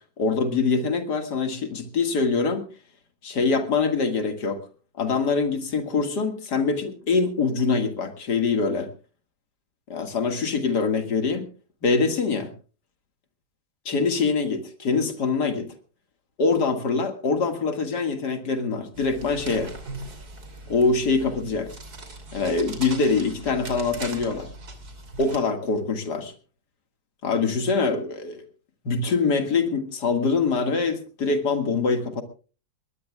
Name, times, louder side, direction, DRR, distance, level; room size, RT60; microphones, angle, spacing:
voice 1, 0.2-2.7 3.2-4.6 5.0-8.9 9.9-11.5 11.8-12.5 13.9-15.7 16.4-19.7 20.7-21.7 22.3-24.5 25.2-26.3 27.2-28.4 28.8-32.2, left 4 dB, 55° left, 7 dB, 2.4 m, -24 dB
sound 1, 18.9-25.4, right 2 dB, 45° right, 3.3 m, -39 dB
21.0 x 20.0 x 2.3 m, 0.36 s
omnidirectional pair, 2.2 m